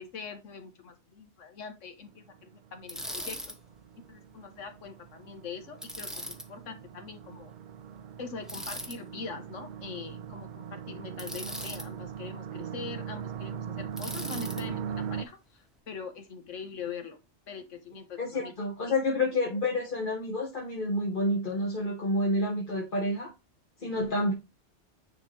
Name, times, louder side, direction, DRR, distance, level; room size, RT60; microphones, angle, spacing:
voice 1, 0.0-3.5 4.1-7.5 8.2-17.2 17.5-18.5, left 5 dB, 85° left, 1.5 m, -43 dB
sound 1, 2.1-15.2, right 8 dB, 60° right, 0.5 m, -40 dB
Bicycle, 2.9-3.6 5.8-6.5 8.5-9.0 11.2-11.9 14.0-14.6, equal, ahead, 0.8 m, -39 dB
voice 2, 18.2-23.3 23.8-24.3, left 1 dB, 45° left, 1.3 m, -29 dB
9.6 x 3.9 x 3.2 m
omnidirectional pair, 1.2 m